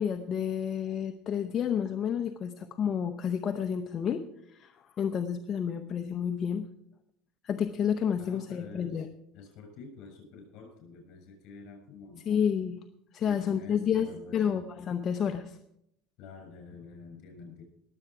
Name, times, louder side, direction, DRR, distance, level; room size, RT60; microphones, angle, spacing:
voice 1, 0.0-4.2 4.5-6.7 7.4-9.1 12.3-12.8 13.1-15.6, left 8 dB, 35° left, 6 dB, 0.8 m, -30 dB
voice 2, 8.2-9.1 9.3-12.3 13.2-14.6 16.2-17.6, left 4 dB, 60° left, 4 dB, 7.0 m, -48 dB
21.0 x 8.0 x 4.8 m, 0.75 s
cardioid pair, 135°, 0 cm